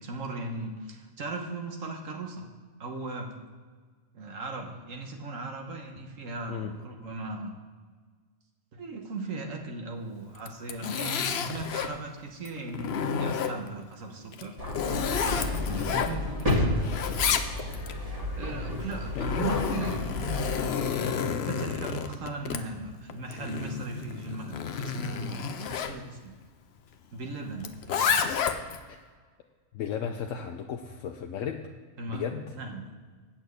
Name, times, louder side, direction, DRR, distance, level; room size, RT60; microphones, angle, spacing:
voice 1, 0.0-2.5 2.8-3.3 4.1-7.5 8.7-14.5 15.6-16.8 18.0-20.6 21.3-26.3 27.1-28.3 32.0-32.8, right 3 dB, 80° right, 3 dB, 1.5 m, -38 dB
Zipper (clothing), 10.3-11.9 12.5-13.8 14.3-16.5 16.8-17.9 18.8-26.0 27.6-28.8, left 7 dB, 60° left, 0.8 m, -30 dB
sound 1, 14.6-20.6, left 1 dB, 30° right, 1.8 m, -31 dB
voice 2, 29.7-31.7 32.1-32.5, left 7 dB, 80° left, 3 dB, 1.0 m, -35 dB
8.7 x 6.1 x 8.0 m, 1.5 s
omnidirectional pair, 1.4 m